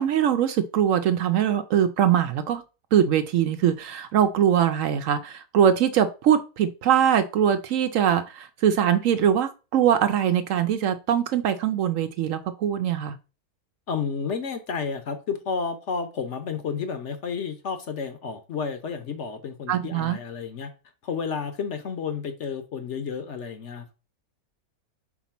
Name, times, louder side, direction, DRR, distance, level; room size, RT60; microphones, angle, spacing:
voice 1, 0.0-2.6 2.9-13.2 19.7-20.2, right 9 dB, 70° right, 0.9 m, -22 dB
voice 2, 13.9-20.7 21.0-23.9, left 5 dB, 55° left, 1.0 m, -31 dB
4.6 x 4.1 x 5.7 m
omnidirectional pair, 1.6 m